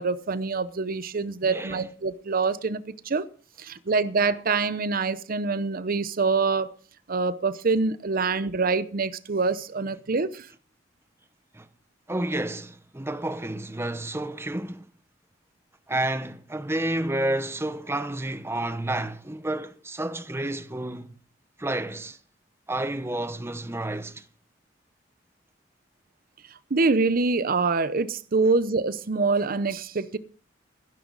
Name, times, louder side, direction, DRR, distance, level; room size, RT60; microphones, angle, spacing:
voice 1, 0.0-3.3 3.6-6.7 7.1-10.5 26.7-30.2, right 4 dB, 50° right, 0.7 m, -25 dB
voice 2, 1.4-1.9 11.5-11.7 12.1-14.9 15.9-21.2 21.6-22.2 22.7-24.2, right 1 dB, 15° right, 0.9 m, -30 dB
15.5 x 12.5 x 4.0 m
head